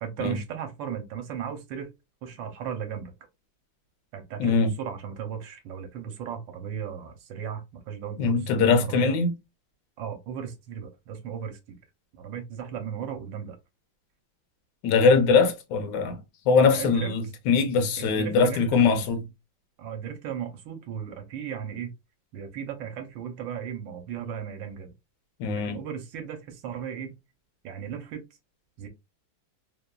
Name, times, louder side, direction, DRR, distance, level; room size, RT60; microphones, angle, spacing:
voice 1, 0.0-1.9 2.2-3.1 4.1-9.2 10.0-11.8 12.1-13.6 16.7-17.1 18.0-19.1 19.8-21.9 22.3-24.9 25.5-27.2 27.6-28.2 28.8-28.9, right 8 dB, 75° right, 1.3 m, -36 dB
voice 2, 4.4-4.7 8.2-9.3 14.8-16.2 16.5-19.2 25.4-25.8, left 5 dB, 70° left, 1.1 m, -22 dB
3.2 x 2.2 x 2.2 m
omnidirectional pair, 2.2 m